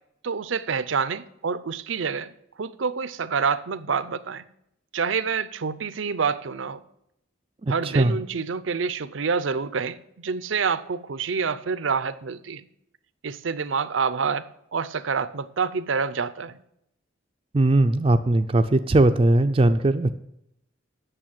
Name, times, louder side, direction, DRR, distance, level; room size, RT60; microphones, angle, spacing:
voice 1, 0.2-2.3 2.6-4.4 4.9-6.8 7.7-12.7 13.2-16.6, right 5 dB, 80° right, 0.6 m, -27 dB
voice 2, 7.6-8.1 17.5-20.1, right 2 dB, 30° right, 0.4 m, -19 dB
9.0 x 6.7 x 8.6 m
head